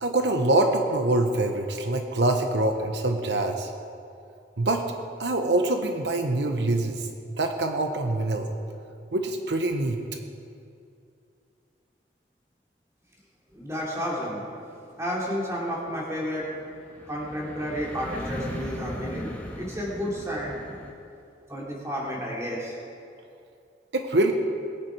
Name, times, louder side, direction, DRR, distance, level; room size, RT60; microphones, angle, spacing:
voice 1, 0.0-3.7 4.6-4.8 5.2-8.5 9.1-10.0 23.9-24.3, right 2 dB, 85° right, 5 dB, 1.0 m, -25 dB
voice 2, 13.5-14.4 15.0-16.5 17.1-19.3 19.6-20.6 21.5-22.7, equal, 15° right, -4 dB, 3.1 m, -31 dB
sound 1, 14.7-20.9, equal, 10° left, 1.4 m, -39 dB
21.0 x 9.6 x 4.7 m, 2.5 s
head